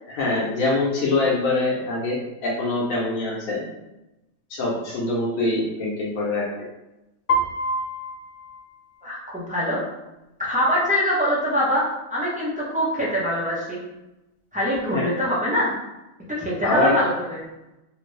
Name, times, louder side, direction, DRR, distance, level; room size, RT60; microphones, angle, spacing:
voice 1, 0.1-3.6 4.5-6.4 14.9-15.0 16.6-17.0, left 2 dB, 85° left, -4 dB, 1.1 m, -24 dB
Piano, 7.3-9.3, equal, 65° left, 0.5 m, -27 dB
voice 2, 9.0-9.8 10.4-13.8 14.5-15.7 16.3-17.4, equal, 5° right, -8 dB, 0.7 m, -24 dB
2.9 x 2.5 x 3.2 m, 0.96 s
omnidirectional pair, 1.4 m